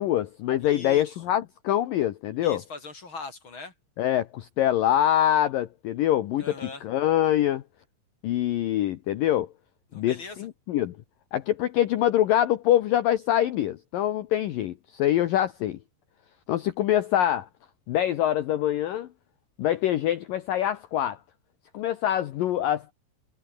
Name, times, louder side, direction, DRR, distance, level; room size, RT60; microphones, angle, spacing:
voice 1, 0.0-2.6 4.0-7.6 8.2-9.5 9.9-11.0 11.3-15.8 16.5-17.5 17.9-19.1 19.6-21.2 21.7-22.9, left 12 dB, 85° left, 2.0 m, -24 dB
voice 2, 0.6-1.2 2.4-3.7 6.4-6.8 9.9-10.4, left 3 dB, 30° left, 3.2 m, -40 dB
omnidirectional pair, 5.5 m